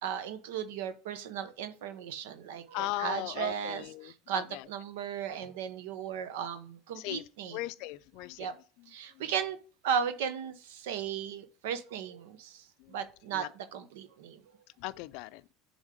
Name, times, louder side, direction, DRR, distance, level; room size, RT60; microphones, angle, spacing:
voice 1, 0.0-7.6 8.4-8.5 8.9-9.6 9.8-14.4, right 8 dB, 85° right, 0.7 m, -36 dB
voice 2, 2.7-4.7 6.9-8.5 9.2-9.3 12.8-13.0 13.3-13.5 14.8-15.4, left 18 dB, 70° left, 0.4 m, -38 dB
7.4 x 3.5 x 5.0 m
supercardioid pair, 120°, 0 cm